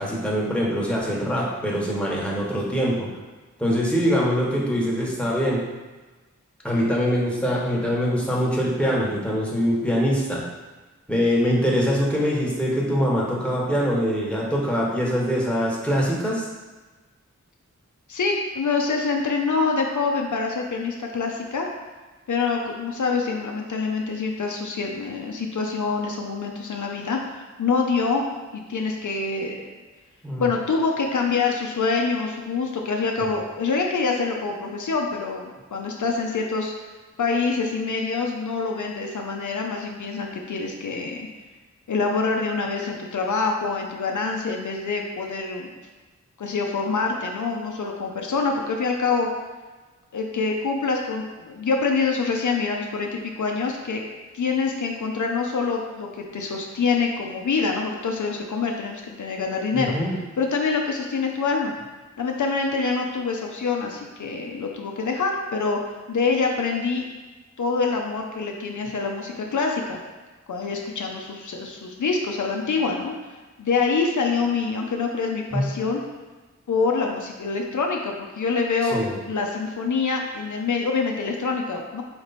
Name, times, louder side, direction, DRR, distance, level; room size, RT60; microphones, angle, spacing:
voice 1, 0.0-3.1 3.6-5.7 6.6-10.4 11.1-16.5 30.2-30.5 33.2-33.3 59.7-60.2 75.5-75.7 78.8-79.1, equal, 5° left, -4 dB, 1.1 m, -23 dB
voice 2, 18.1-21.7 22.3-27.2 27.6-28.2 28.5-29.7 30.4-36.7 37.2-41.3 41.9-45.7 46.4-49.3 50.1-54.0 54.3-56.1 56.3-59.9 60.4-61.7 62.2-65.8 66.1-67.1 67.6-70.0 70.5-73.1 73.6-76.0 76.7-79.0 79.2-82.0, left 4 dB, 75° left, 1 dB, 0.6 m, -25 dB
4.3 x 3.1 x 4.0 m, 1.3 s
wide cardioid pair, 70°, 30 cm